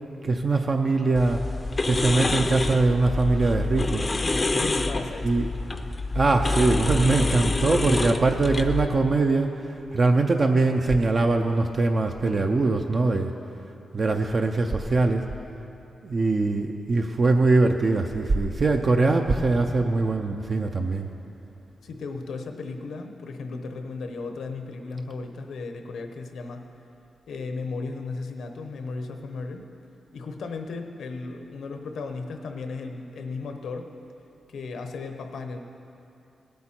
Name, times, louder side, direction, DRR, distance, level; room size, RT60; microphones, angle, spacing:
voice 1, 0.2-1.4 1.8-4.1 5.2-5.5 6.1-13.3 13.9-15.2 16.0-21.1, right 3 dB, 40° right, 4 dB, 0.5 m, -22 dB
sound 1, 1.1-8.9, left 2 dB, 25° left, 0.5 m, -27 dB
voice 2, 4.6-5.3 21.8-26.7 27.3-29.7 30.1-33.9 34.5-35.6, left 4 dB, 85° left, 5 dB, 0.9 m, -35 dB
17.5 x 8.2 x 4.4 m, 2.8 s
wide cardioid pair, 140°, 0 cm